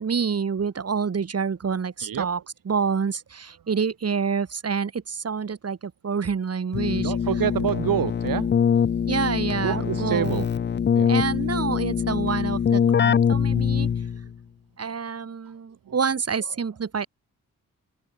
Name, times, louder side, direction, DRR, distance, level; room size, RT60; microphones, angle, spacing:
voice 1, 0.0-7.1 9.1-10.4 11.0-13.9 14.8-17.1, right 6 dB, 45° right, 3.8 m, -27 dB
Keyboard (musical), 6.7-14.3, left 7 dB, 35° left, 0.4 m, -23 dB
voice 2, 7.0-8.5 9.6-10.5 10.9-11.1, right 10 dB, 90° right, 1.9 m, -27 dB
open air
wide cardioid pair, 145°, 33 cm